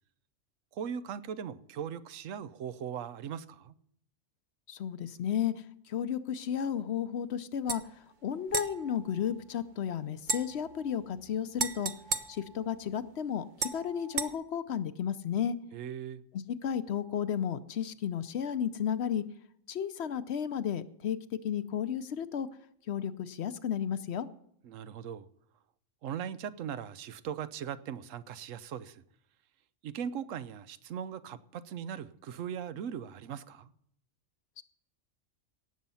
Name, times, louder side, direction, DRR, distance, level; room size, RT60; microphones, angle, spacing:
voice 1, 0.7-3.7 15.7-16.2 24.6-25.3 26.0-29.0 29.8-33.7, right 8 dB, 85° right, 1.1 m, -39 dB
voice 2, 4.7-5.5 5.9-7.8 8.2-11.9 12.3-15.6 16.6-19.2 19.7-21.2 21.4-22.5 22.9-24.3 34.6-34.7, left 8 dB, 65° left, 0.9 m, -33 dB
Glass Tinkles, 7.7-7.8 8.5-9.8 10.2-13.1 13.6-14.3, right 5 dB, 45° right, 0.8 m, -37 dB
17.5 x 7.3 x 5.5 m
omnidirectional pair, 1.3 m